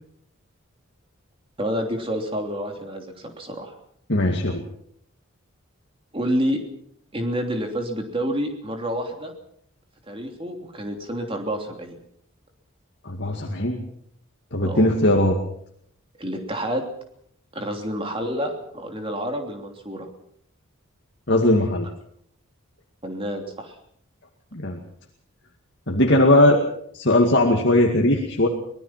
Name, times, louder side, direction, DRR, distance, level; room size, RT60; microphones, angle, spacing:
voice 1, 1.6-3.8 6.1-6.6 7.1-9.3 10.1-11.9 14.6-14.9 16.2-16.8 17.5-20.1 23.0-23.8, equal, 25° right, 4 dB, 3.1 m, -28 dB
voice 2, 4.1-4.6 13.0-13.8 14.5-15.4 21.3-21.9 24.5-24.8 25.9-26.6 26.9-28.5, left 1 dB, 50° left, 1 dB, 2.2 m, -19 dB
24.5 x 19.5 x 5.9 m, 0.68 s
head